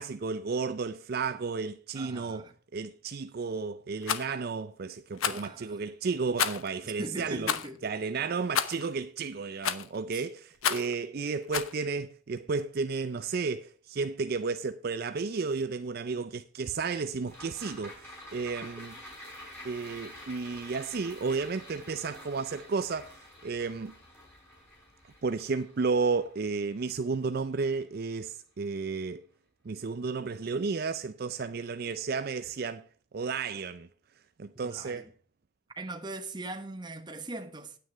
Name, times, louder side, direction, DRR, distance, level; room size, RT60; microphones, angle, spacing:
voice 1, 0.0-2.4 2.7-7.5 7.8-18.9 19.6-23.9 25.2-29.2 29.7-32.9 33.1-33.9 34.4-35.0, right 4 dB, 45° right, 0.4 m, -32 dB
voice 2, 1.9-2.5 5.3-5.8 6.8-7.8 10.1-10.2 34.5-35.1 35.7-37.8, right 2 dB, 20° right, 1.1 m, -41 dB
Rattle, 4.0-4.3 5.2-5.5 6.4-6.7 7.4-7.7 8.5-8.9 9.6-10.0 10.6-10.9 11.5-11.7, left 8 dB, 80° left, 0.9 m, -30 dB
sound 1, 17.3-27.8 28.1-28.2, left 1 dB, 10° left, 5.2 m, -49 dB
9.5 x 9.3 x 4.4 m
head